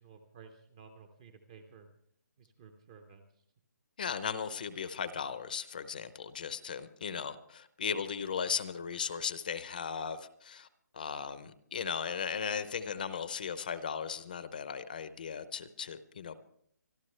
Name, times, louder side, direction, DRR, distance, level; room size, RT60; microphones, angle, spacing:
voice 1, 0.0-1.9 2.4-3.3, right 5 dB, 15° right, 7 dB, 0.6 m, -54 dB
voice 2, 4.0-10.7 10.9-16.4, left 6 dB, 30° left, 13 dB, 0.6 m, -37 dB
25.5 x 12.5 x 3.2 m, 0.67 s
hypercardioid pair, 175°, 10 cm